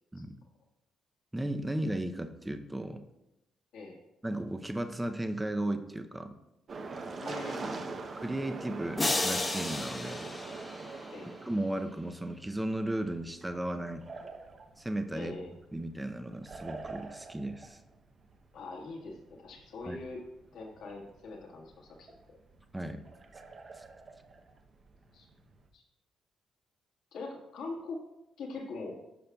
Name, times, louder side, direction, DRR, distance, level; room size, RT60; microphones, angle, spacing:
voice 1, 1.3-3.0 4.2-6.4 8.2-10.3 11.4-14.1 14.8-15.4 15.7-17.8 19.9-20.0 22.7-23.0 23.8-23.9, right 1 dB, 10° right, 7 dB, 0.6 m, -35 dB
sound 1, 6.7-11.6 12.5-25.7, right 3 dB, 45° right, 0.7 m, -44 dB
voice 2, 7.2-8.2 11.1-11.3 15.1-15.5 18.5-20.2 20.5-22.1 25.1-25.3 25.7-25.8 27.1-28.0 28.4-29.0, left 3 dB, 75° left, -1 dB, 1.6 m, -42 dB
sound 2, 9.0-11.3, left 2 dB, 20° left, 0.9 m, -33 dB
12.0 x 5.7 x 2.3 m, 0.91 s
cardioid pair, 90°, 0 cm